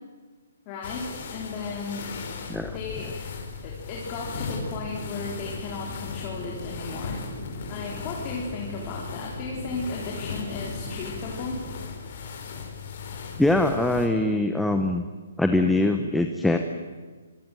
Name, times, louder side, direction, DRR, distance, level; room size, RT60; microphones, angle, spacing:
voice 1, 0.7-2.1 2.7-3.3 3.6-7.2 7.7-11.6, left 4 dB, 20° left, -2 dB, 3.8 m, -35 dB
sound 1, 0.8-14.1, left 5 dB, 40° left, 5.0 m, -37 dB
sound 2, 4.3-11.8, right 3 dB, 20° right, 6.6 m, -42 dB
voice 2, 13.4-15.0 15.4-16.6, left 2 dB, ahead, 5 dB, 1.0 m, -22 dB
27.0 x 24.0 x 9.2 m, 1.4 s
hypercardioid pair, 175°, 0 cm